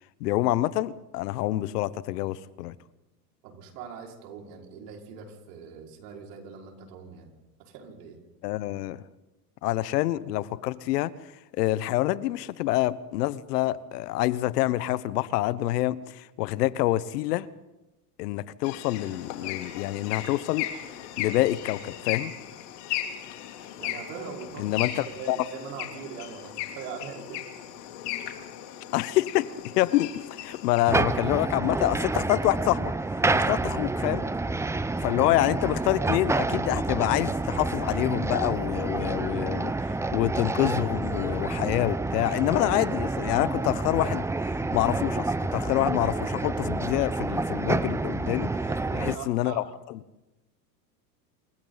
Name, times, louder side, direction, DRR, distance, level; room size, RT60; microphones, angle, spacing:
voice 1, 0.2-2.7 8.4-9.0 9.6-11.1 11.5-17.5 18.2-20.7 21.2-22.3 24.6-25.4 28.9-29.5 29.8-32.9 33.3-34.2 35.0-39.7 40.1-44.3 44.7-48.5 49.0-50.0, left 16 dB, 75° left, 1.1 m, -27 dB
voice 2, 3.4-7.3 7.6-8.2 23.8-24.8 25.0-27.5 48.5-49.7, right 6 dB, 70° right, 5.4 m, -41 dB
sound 1, 18.6-31.0, left 11 dB, 55° left, 3.4 m, -37 dB
sound 2, 30.9-49.1, right 3 dB, 5° right, 0.6 m, -28 dB
28.5 x 26.0 x 4.1 m
hypercardioid pair, 105°, 48 cm